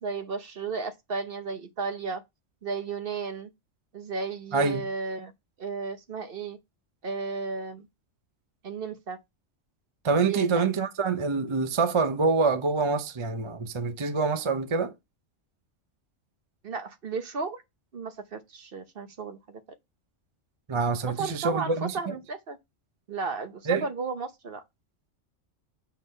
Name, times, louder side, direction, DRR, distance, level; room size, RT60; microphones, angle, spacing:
voice 1, 0.0-2.2 2.6-3.5 3.9-5.3 5.6-6.6 7.0-7.9 8.6-9.2 10.2-10.7 16.6-17.6 17.9-19.6 21.2-22.6 23.1-24.6, right 4 dB, 50° right, 1.0 m, -34 dB
voice 2, 4.5-4.8 10.0-14.9 20.7-22.1 23.7-23.9, right 4 dB, 30° right, 0.6 m, -26 dB
6.2 x 3.9 x 5.3 m
omnidirectional pair, 1.3 m